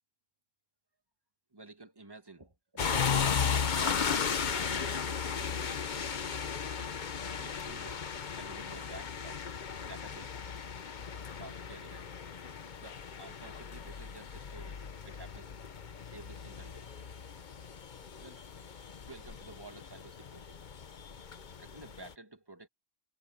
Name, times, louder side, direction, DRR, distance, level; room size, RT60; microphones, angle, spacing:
voice 1, 1.5-5.8 7.4-8.1 8.4-9.4 9.8-10.5 11.3-12.1 12.7-15.5 16.1-16.9 18.1-18.8 19.1-20.6 21.6-22.7, right 2 dB, 20° right, 1.7 m, -51 dB
sound 1, 2.8-22.1, left 6 dB, 40° left, 0.9 m, -36 dB
omnidirectional pair, 1.3 m